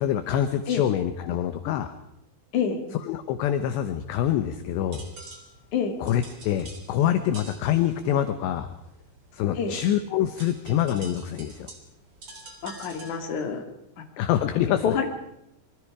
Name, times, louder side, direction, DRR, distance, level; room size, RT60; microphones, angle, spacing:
voice 1, 0.0-1.9 3.0-5.0 6.0-8.7 9.3-11.7 14.2-14.9, left 10 dB, 75° left, 9 dB, 2.9 m, -25 dB
sound 1, 4.4-13.6, right 3 dB, 30° right, 3.8 m, -47 dB
voice 2, 12.6-13.6 14.6-15.1, left 6 dB, 45° left, 4 dB, 3.4 m, -27 dB
26.5 x 24.0 x 5.0 m, 0.81 s
omnidirectional pair, 5.8 m